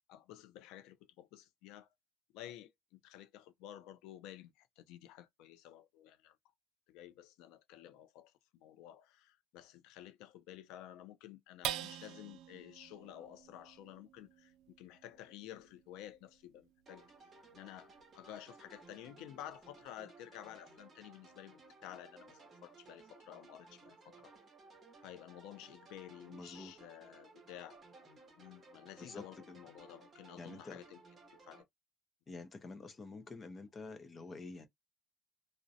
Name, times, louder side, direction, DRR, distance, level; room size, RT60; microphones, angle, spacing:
voice 1, 0.1-1.9 2.3-6.4 6.9-17.0 17.5-24.3 25.0-27.8 28.4-31.0 31.3-31.7, left 12 dB, 85° left, 0.4 m, -52 dB
sound 1, 11.6-18.3 18.8-18.9 19.3-19.8, right 11 dB, 70° right, 0.4 m, -47 dB
sound 2, 16.9-31.6, right 3 dB, 25° right, 0.8 m, -59 dB
voice 2, 26.3-26.7 29.0-29.6 30.4-30.8 32.3-34.7, left 3 dB, 20° left, 0.4 m, -48 dB
2.5 x 2.0 x 2.6 m
cardioid pair, 175°, 0 cm